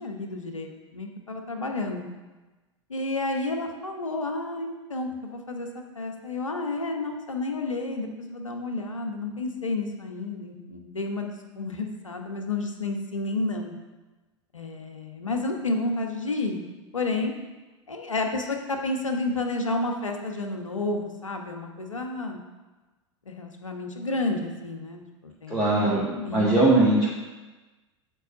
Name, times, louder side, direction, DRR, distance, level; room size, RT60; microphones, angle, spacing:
voice 1, 0.0-2.1 2.9-5.7 5.9-11.3 11.6-13.7 14.5-16.7 16.9-17.3 17.9-22.4 23.3-25.7 26.2-26.6, left 2 dB, 90° left, 3 dB, 1.1 m, -31 dB
voice 2, 25.5-26.1 26.3-27.1, right 2 dB, 5° left, -9 dB, 2.4 m, -20 dB
8.2 x 4.8 x 6.2 m, 1.2 s
figure-of-eight pair, 85°, 16 cm